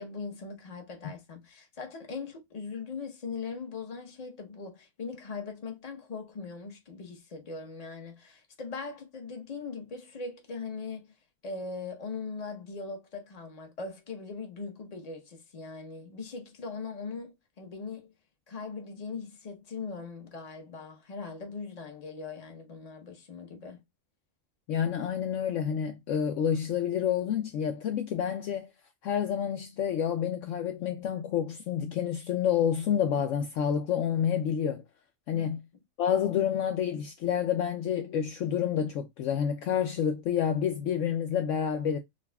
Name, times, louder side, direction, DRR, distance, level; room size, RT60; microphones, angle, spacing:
voice 1, 0.0-11.1 11.4-18.1 18.5-23.8 35.3-35.5, left 4 dB, 30° left, 0.9 m, -40 dB
voice 2, 24.7-28.7 29.0-34.8 35.3-35.6 36.0-42.0, left 8 dB, 70° left, 0.8 m, -28 dB
6.3 x 2.3 x 2.2 m
omnidirectional pair, 1.5 m